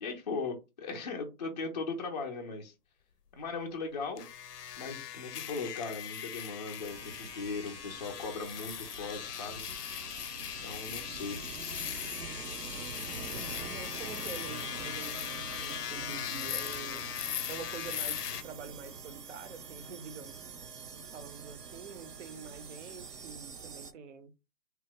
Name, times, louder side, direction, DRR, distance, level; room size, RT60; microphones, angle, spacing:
voice 1, 0.0-2.7 3.3-4.3 4.8-9.6 10.6-11.4, left 4 dB, 30° left, 0.4 m, -38 dB
sound 1, 4.2-18.4, left 10 dB, 85° left, 0.5 m, -39 dB
sound 2, 6.8-23.9, right 6 dB, 90° right, 0.7 m, -46 dB
voice 2, 13.3-17.0 17.5-20.3 20.9-24.3, right 5 dB, 50° right, 0.7 m, -46 dB
2.8 x 2.0 x 3.6 m
hypercardioid pair, 140°, 46 cm